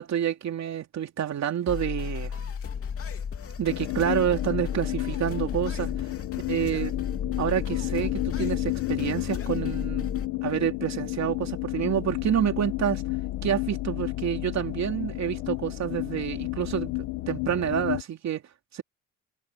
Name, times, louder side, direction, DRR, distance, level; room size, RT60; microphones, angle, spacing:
voice 1, 0.0-2.3 3.6-5.9 6.5-6.9 7.4-10.1 10.4-13.0 13.4-16.9 17.3-18.4 18.7-18.8, right 10 dB, 65° right, 2.9 m, -28 dB
sound 1, 1.7-10.3, left 7 dB, 50° left, 2.7 m, -34 dB
sound 2, 3.7-18.0, left 19 dB, 85° left, 1.4 m, -32 dB
cardioid pair, 90°, 30 cm